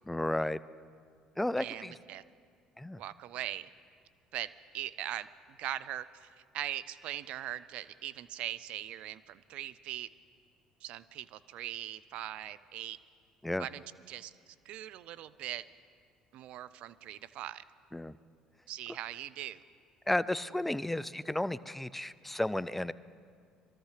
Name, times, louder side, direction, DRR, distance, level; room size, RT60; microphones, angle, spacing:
voice 1, 0.1-0.6 1.4-1.9 2.8-3.0 13.4-13.7 17.9-18.1 20.1-22.9, left 1 dB, 10° left, 17 dB, 0.4 m, -33 dB
voice 2, 1.6-2.2 3.0-3.7 4.3-10.1 10.8-13.0 13.6-15.6 16.3-17.6 18.7-19.6, right 13 dB, 65° right, 17 dB, 0.4 m, -41 dB
22.5 x 14.0 x 3.3 m, 2.2 s
hypercardioid pair, 70°, 2 cm